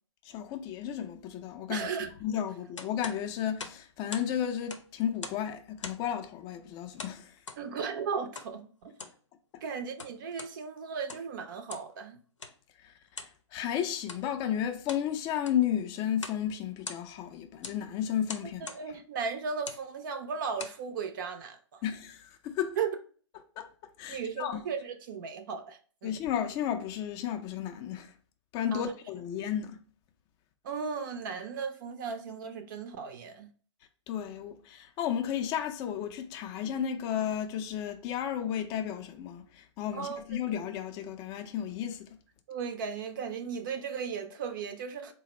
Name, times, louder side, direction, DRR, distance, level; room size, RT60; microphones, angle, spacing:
voice 1, 0.3-7.3 13.5-18.7 21.8-22.8 23.6-23.7 24.0-24.6 26.0-28.1 28.5-29.8 34.1-42.2, left 9 dB, 25° left, 0.4 m, -33 dB
voice 2, 1.7-2.1 7.6-8.7 9.6-12.2 18.6-21.6 22.8-23.0 24.1-26.1 28.7-28.9 30.6-33.5 39.9-40.4 42.5-45.1, right 6 dB, 45° right, 0.5 m, -36 dB
sound 1, 2.8-4.3 4.6-5.5 5.8-6.2 7.0-7.6 8.3-8.5 8.9-9.2 9.8-10.5 11.0-11.3 11.7-11.9 12.4-12.6 13.1-13.4 14.0-14.3 14.7-15.1 15.4-15.7 16.2-16.4 16.7-17.3 17.6-17.8 18.3-18.8 19.5-19.9 20.4-20.8, left 4 dB, 85° left, 0.6 m, -42 dB
4.0 x 2.0 x 4.1 m
figure-of-eight pair, 125°, 15 cm